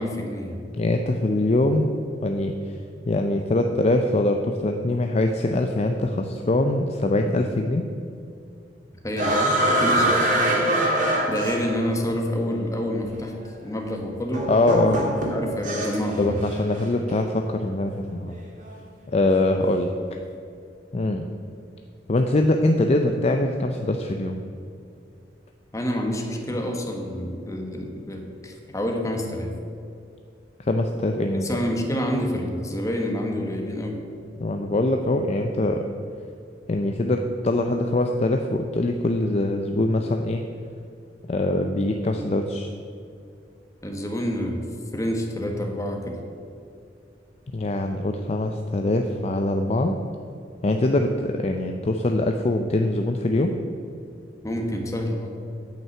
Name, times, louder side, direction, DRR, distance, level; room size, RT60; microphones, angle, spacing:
voice 1, 0.0-0.6 9.0-9.5 9.8-10.2 11.3-13.3 13.6-14.5 15.0-16.4 25.7-29.5 31.3-34.0 43.8-44.6 44.9-46.2 54.4-55.3, equal, 20° left, 2 dB, 1.2 m, -28 dB
voice 2, 0.8-1.9 2.2-2.7 3.1-7.8 14.5-15.0 16.2-18.4 19.1-19.9 20.9-21.2 22.1-24.4 30.6-31.6 34.4-35.9 36.7-40.4 41.3-42.7 47.5-49.9 50.6-53.5, left 2 dB, 35° left, 5 dB, 0.5 m, -23 dB
sound 1, 9.2-12.0 13.1-13.2 14.3-16.1 16.4-16.8, right 1 dB, 45° right, 2.0 m, -23 dB
9.1 x 5.5 x 7.8 m, 2.5 s
head